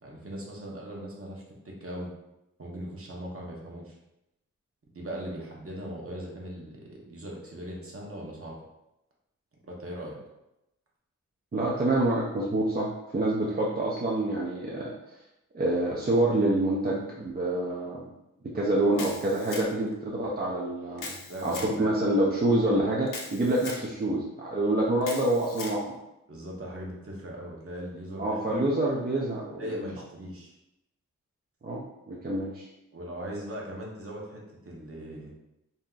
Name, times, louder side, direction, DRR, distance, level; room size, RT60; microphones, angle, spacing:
voice 1, 0.0-2.1 2.6-4.0 4.9-8.6 9.6-10.2 21.3-21.9 26.3-28.4 29.6-30.6 32.9-35.3, equal, 45° right, -2 dB, 1.0 m, -39 dB
voice 2, 11.5-14.9 15.5-18.1 18.5-21.2 21.4-26.0 28.2-29.8 31.6-32.7, right 1 dB, 30° right, -4 dB, 0.6 m, -27 dB
Camera, 19.0-19.9 21.0-21.7 23.1-23.9 25.0-25.8, left 4 dB, 90° left, 0.5 m, -40 dB
2.8 x 2.2 x 3.7 m, 0.89 s
cardioid pair, 50°, 31 cm